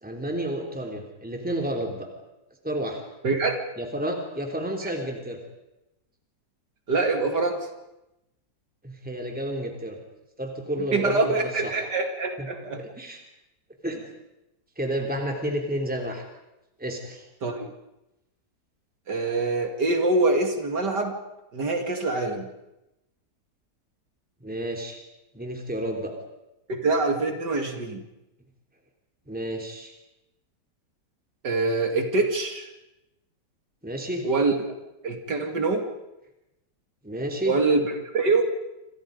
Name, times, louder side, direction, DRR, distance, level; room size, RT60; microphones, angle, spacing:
voice 1, 0.0-2.1 2.6-3.0 3.8-5.4 8.8-10.0 10.4-11.7 12.4-12.5 12.8-13.2 13.8-14.0 14.8-16.2 16.8-17.3 24.4-25.0 25.3-26.1 29.3-29.9 33.8-34.3 37.0-37.6, right 1 dB, 5° right, 2 dB, 3.3 m, -31 dB
voice 2, 3.2-3.6 4.8-4.9 6.9-7.7 10.9-12.8 17.4-17.7 19.1-21.1 21.5-22.5 26.7-28.0 31.4-32.7 34.2-34.5 35.0-35.9 37.4-38.5, right 3 dB, 65° right, 4 dB, 2.9 m, -24 dB
28.0 x 27.5 x 5.2 m, 0.92 s
omnidirectional pair, 1.9 m